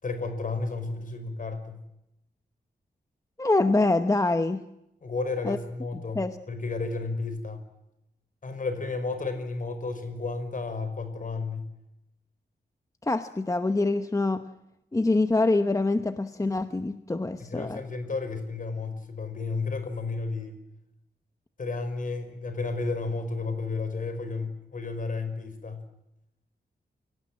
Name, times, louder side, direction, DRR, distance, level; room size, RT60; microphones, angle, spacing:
voice 1, 0.0-1.8 5.0-6.2 6.5-7.6 8.4-11.7 17.4-20.6 21.6-25.8, left 3 dB, 50° left, 9 dB, 5.2 m, -32 dB
voice 2, 3.4-4.6 5.4-5.6 6.1-6.4 13.0-14.4 14.9-17.8, left 2 dB, 20° left, 9 dB, 1.0 m, -25 dB
29.0 x 18.0 x 7.5 m, 0.87 s
wide cardioid pair, 130°, 18 cm